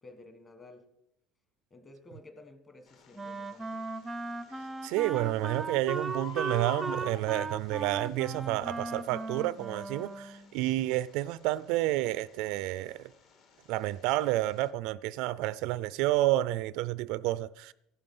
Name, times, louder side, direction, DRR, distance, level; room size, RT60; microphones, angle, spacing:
voice 1, 0.0-0.9 1.7-3.8, left 2 dB, 15° left, 1.5 m, -52 dB
Bird, 2.9-14.7, left 5 dB, 45° left, 2.1 m, -52 dB
Wind instrument woodwind instrument, 3.1-10.5, right 3 dB, 10° right, 0.6 m, -37 dB
voice 2, 4.8-13.1 13.7-17.7, right 16 dB, 60° right, 0.4 m, -30 dB
15.0 x 11.5 x 5.5 m
cardioid pair, 170°, 0 cm